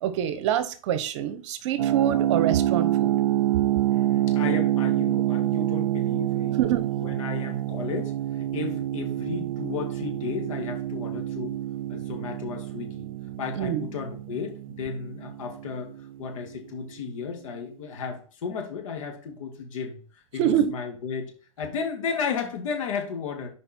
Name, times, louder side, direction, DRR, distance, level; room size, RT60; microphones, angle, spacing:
voice 1, 0.0-3.1 6.6-6.9 13.5-13.8 20.4-20.7, right 10 dB, 60° right, 12 dB, 1.0 m, -26 dB
sound 1, 1.8-16.6, right 13 dB, 85° right, 0.4 m, -27 dB
voice 2, 3.9-6.6 7.0-11.5 11.9-13.1 13.4-15.9 16.2-21.3 21.6-23.5, left 5 dB, 70° left, 2 dB, 2.3 m, -34 dB
6.6 x 5.1 x 4.4 m, 0.40 s
hypercardioid pair, 120°, 17 cm